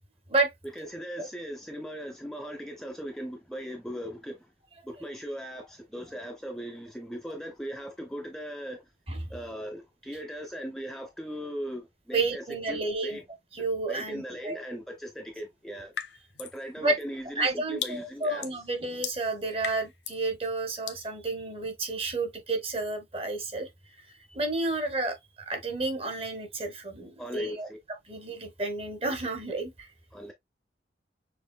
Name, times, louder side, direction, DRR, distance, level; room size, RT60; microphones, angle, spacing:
voice 1, 0.8-4.5 4.8-8.8 9.3-13.2 13.9-15.9 16.4-18.5 27.2-27.8 30.1-30.3, equal, 5° left, 0.6 m, -39 dB
voice 2, 12.1-13.2 13.5-14.6 16.8-17.0 17.4-23.7 24.3-25.2 25.5-27.7 28.1-29.9, right 3 dB, 35° right, 1.3 m, -31 dB
sound 1, 15.9-16.6 17.0-20.3 20.9-21.1, left 9 dB, 80° left, 0.8 m, -38 dB
6.6 x 3.2 x 2.2 m
head